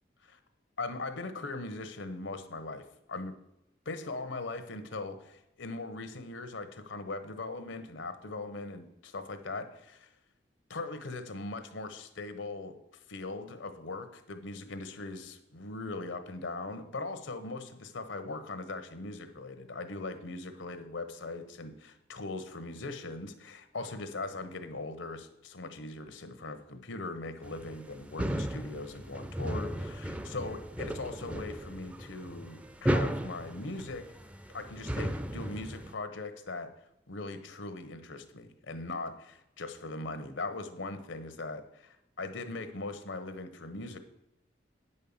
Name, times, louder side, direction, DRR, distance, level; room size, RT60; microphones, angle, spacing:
voice 1, 0.8-3.3 3.8-10.1 10.7-12.8 13.1-34.1 34.5-36.7 37.1-44.0, left 3 dB, 90° left, 9 dB, 1.0 m, -40 dB
sound 1, 27.4-35.9, equal, 5° right, 0.4 m, -35 dB
8.7 x 5.5 x 7.1 m, 0.86 s
head